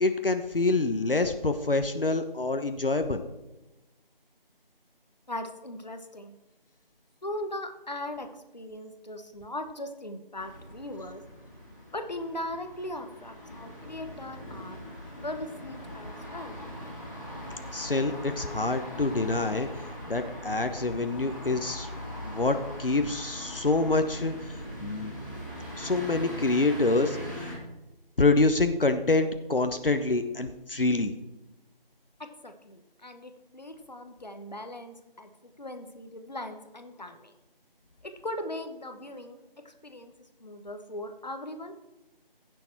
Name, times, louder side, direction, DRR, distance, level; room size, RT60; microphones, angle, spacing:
voice 1, 0.0-3.2 17.7-19.7 20.1-21.9 22.2-24.3 24.8-25.1 25.8-27.5 28.2-31.1, left 3 dB, 65° left, 7 dB, 1.0 m, -26 dB
voice 2, 5.3-6.4 7.2-11.2 11.9-14.8 15.2-16.6 32.2-35.3 35.6-37.3 38.0-39.4 39.6-40.1 40.4-41.7, left 1 dB, 45° left, 7 dB, 1.1 m, -39 dB
sound 1, 10.4-27.5, equal, 20° left, 2.5 m, -41 dB
16.0 x 6.9 x 4.6 m, 1.0 s
figure-of-eight pair, 175°, 29 cm